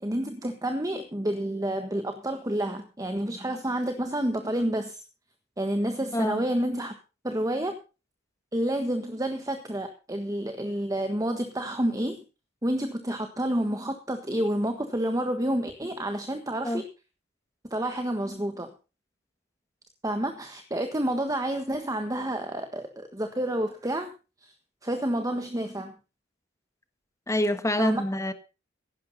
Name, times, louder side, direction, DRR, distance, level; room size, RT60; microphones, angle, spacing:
voice 1, 0.0-5.0 5.6-6.9 7.2-7.8 8.5-12.2 12.6-16.8 17.7-18.7 20.0-24.1 24.4-24.5 24.8-25.9 27.8-28.0, right 1 dB, 20° right, 1.5 m, -29 dB
voice 2, 27.3-28.3, left 1 dB, 15° left, 1.5 m, -26 dB
16.0 x 11.5 x 4.1 m
head